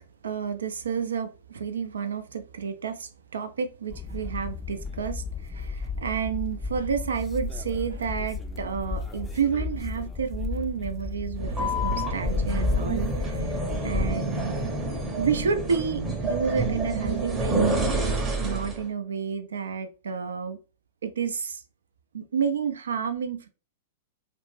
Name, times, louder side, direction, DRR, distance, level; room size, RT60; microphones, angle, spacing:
voice 1, 0.2-14.6 15.2-17.6 18.4-20.6 21.0-21.6 22.1-23.5, right 6 dB, 80° right, 0.5 m, -30 dB
sound 1, 3.9-14.1, left 3 dB, 10° left, 0.5 m, -32 dB
sound 2, 11.4-18.9, right 2 dB, 15° right, 0.8 m, -28 dB
2.5 x 2.1 x 3.2 m
hypercardioid pair, 105°, 0 cm